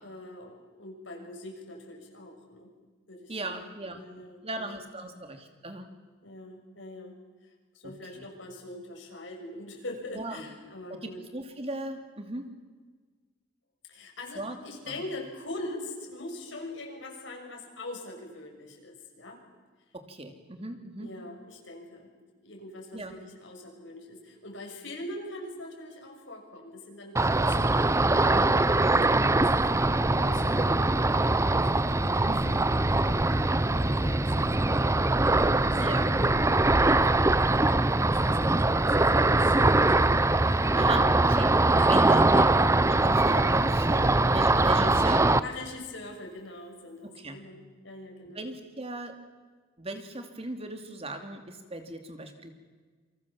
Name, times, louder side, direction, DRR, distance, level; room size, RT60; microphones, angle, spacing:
voice 1, 0.0-2.7 3.1-3.6 3.9-4.8 5.1-5.2 6.2-7.2 7.7-11.2 13.9-19.4 21.0-22.1 22.4-28.9 29.2-36.1 38.1-39.8 40.9-41.2 41.8-42.7 45.4-48.5, left 2 dB, 75° left, 1 dB, 6.6 m, -43 dB
voice 2, 3.3-4.0 4.4-5.9 7.8-8.2 10.1-10.4 10.9-12.5 14.4-14.6 14.9-15.0 19.9-21.1 22.9-23.2 32.2-32.4 35.8-36.1 40.4-41.5 41.8-42.1 42.9-45.4 47.0-47.4 48.3-49.1 49.8-52.5, right 1 dB, 30° right, 6 dB, 2.8 m, -37 dB
Ocean, 27.2-45.4, right 2 dB, 15° right, 0.7 m, -22 dB
28.5 x 25.5 x 7.3 m, 1.4 s
head